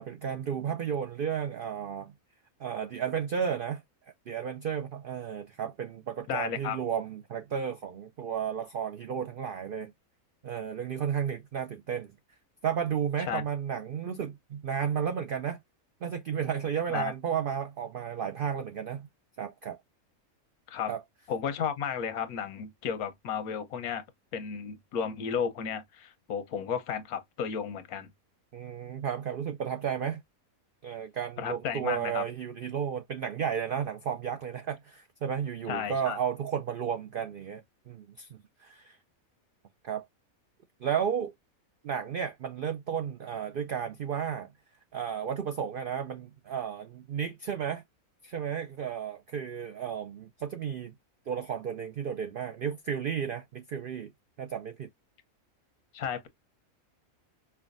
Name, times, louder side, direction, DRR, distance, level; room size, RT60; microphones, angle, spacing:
voice 1, 0.0-2.1 2.6-3.8 4.3-9.9 10.4-12.1 12.6-15.6 16.0-19.1 19.4-19.8 20.9-21.0 28.5-30.2 30.8-39.0 39.8-40.0 40.8-41.3 41.8-44.5 44.9-47.8 48.2-50.9 51.3-54.1 54.4-54.9, right 8 dB, 80° right, 0.4 m, -33 dB
voice 2, 6.3-6.8 13.3-13.4 16.9-17.1 20.7-20.9 21.3-24.0 24.3-28.1 31.4-32.2 35.7-36.2 55.9-56.3, left 7 dB, 85° left, 1.2 m, -33 dB
5.5 x 2.3 x 2.5 m
omnidirectional pair, 1.5 m